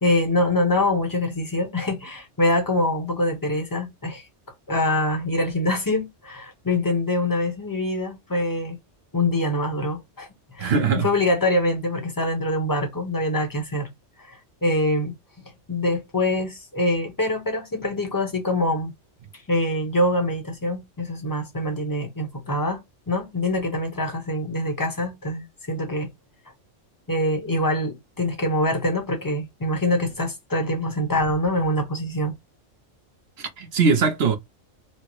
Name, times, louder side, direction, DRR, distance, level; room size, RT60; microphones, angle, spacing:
voice 1, 0.0-4.3 4.7-8.8 9.1-10.3 10.5-13.9 14.2-15.2 15.7-18.9 19.5-22.8 23.1-26.1 27.1-32.3, left 1 dB, 20° left, 0.8 m, -24 dB
voice 2, 10.6-11.1 33.4-34.4, right 5 dB, 60° right, 0.9 m, -21 dB
4.4 x 2.0 x 3.0 m
omnidirectional pair, 1.3 m